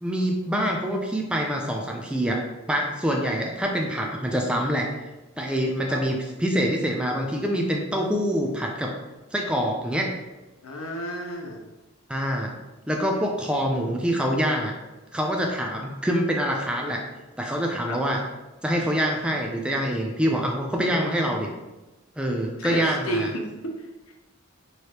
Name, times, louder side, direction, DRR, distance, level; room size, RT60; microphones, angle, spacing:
voice 1, 0.0-2.4 2.7-4.9 5.4-8.9 9.3-10.1 12.1-12.5 12.9-14.7 15.1-17.0 17.4-18.2 18.6-21.5 22.2-23.3, equal, 5° right, 0 dB, 0.3 m, -25 dB
voice 2, 10.6-11.6 17.9-18.0 20.8-21.6 22.6-24.1, equal, 85° left, 1 dB, 0.8 m, -33 dB
4.7 x 3.1 x 2.9 m, 1.1 s
head